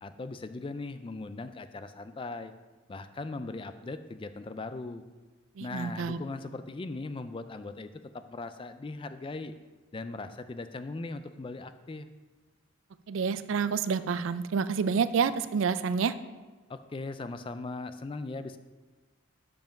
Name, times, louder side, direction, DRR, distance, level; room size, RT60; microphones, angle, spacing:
voice 1, 0.0-2.5 2.9-5.0 5.6-9.5 9.9-12.1 16.7-18.6, left 3 dB, 25° left, 10 dB, 0.3 m, -39 dB
voice 2, 5.6-6.2 13.1-16.2, right 6 dB, 60° right, 13 dB, 0.3 m, -28 dB
7.1 x 5.3 x 5.8 m, 1.2 s
head